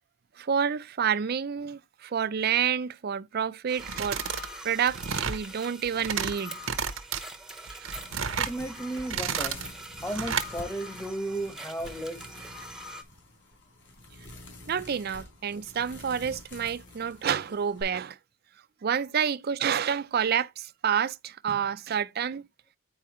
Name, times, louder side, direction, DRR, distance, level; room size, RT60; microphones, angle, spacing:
voice 1, 0.4-6.6 14.7-18.2 18.8-22.4, right 7 dB, 50° right, 0.4 m, -29 dB
sound 1, 3.7-13.0, right 1 dB, 5° right, 0.8 m, -44 dB
sound 2, 3.8-4.5 4.8-5.4 5.8-6.3 6.6-7.2 7.7-8.6 9.0-9.7 10.1-10.5, right 7 dB, 80° right, 0.8 m, -31 dB
sound 3, 7.9-17.8, left 1 dB, 65° left, 4.0 m, -48 dB
voice 2, 8.4-9.6 10.0-12.2, right 1 dB, 10° left, 1.2 m, -34 dB
9.9 x 4.6 x 3.0 m
head